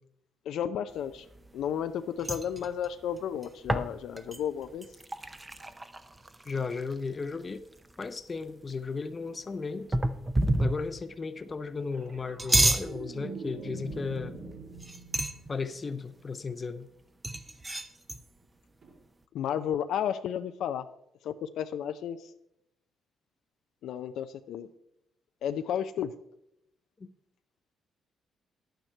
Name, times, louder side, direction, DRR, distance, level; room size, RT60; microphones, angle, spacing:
voice 1, 0.5-1.3 1.5-4.9 19.3-20.8 21.2-22.2 23.8-24.7 25.4-26.1, left 9 dB, 80° left, 9 dB, 0.5 m, -32 dB
sound 1, 1.1-1.9 2.2-7.1 7.4-7.5 7.7-8.4 9.9-11.1 12.2-12.9 13.9-14.2 14.7-15.5 17.2-18.2, right 1 dB, 20° right, 0.7 m, -30 dB
voice 2, 6.4-7.6 8.0-10.0 10.6-14.4 15.5-16.9 27.0-27.1, left 4 dB, 30° left, 11 dB, 0.7 m, -35 dB
sound 2, 11.9-16.4 18.8-19.0, right 3 dB, 55° right, 1.8 m, -44 dB
10.5 x 9.0 x 4.5 m, 0.78 s
cardioid pair, 90°, 0 cm